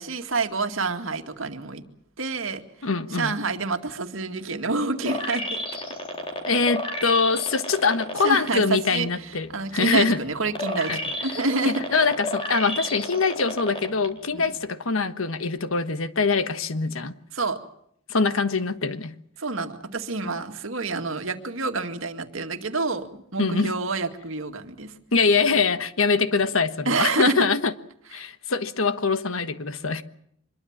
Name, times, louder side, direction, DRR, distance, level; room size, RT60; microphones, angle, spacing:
voice 1, 0.0-1.8 2.2-5.6 8.2-11.8 14.3-14.5 17.3-17.6 19.4-24.9 26.9-27.3 28.2-28.3, right 3 dB, 75° right, 2.2 m, -28 dB
voice 2, 2.8-3.3 6.5-10.2 10.9-11.0 11.6-17.2 18.1-19.1 23.4-23.7 25.1-27.7 28.1-30.0, left 4 dB, 85° left, 1.3 m, -23 dB
sound 1, 5.0-8.5 9.0-14.1 14.5-14.6, left 1 dB, 25° left, 3.8 m, -32 dB
25.0 x 22.0 x 7.4 m
head